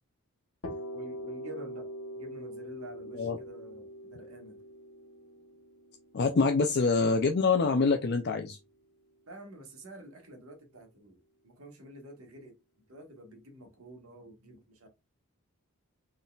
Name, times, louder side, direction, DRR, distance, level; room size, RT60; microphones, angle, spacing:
sound 1, 0.6-8.4, equal, 70° left, 1.2 m, -43 dB
voice 1, 0.9-1.9 2.1-4.6 9.3-11.2 11.4-12.6 12.9-14.9, right 1 dB, 70° right, 1.5 m, -48 dB
voice 2, 6.1-8.6, left 4 dB, 45° left, 0.4 m, -25 dB
3.9 x 3.7 x 2.3 m
head